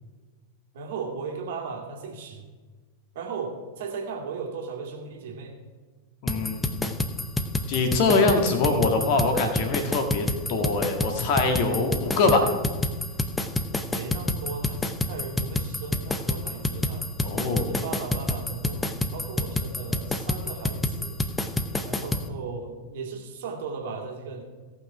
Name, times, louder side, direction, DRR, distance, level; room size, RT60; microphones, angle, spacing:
voice 1, 0.7-2.5 3.1-5.6 13.8-17.1 17.5-21.2 21.8-24.4, right 4 dB, 55° right, 1 dB, 2.2 m, -36 dB
voice 2, 6.2-7.0 7.7-12.5 17.2-17.7, left 3 dB, 45° left, 5 dB, 1.8 m, -24 dB
sound 1, 6.3-22.3, left 2 dB, 10° left, 0.8 m, -28 dB
17.0 x 6.0 x 4.8 m, 1.4 s
figure-of-eight pair, 90°, 0 cm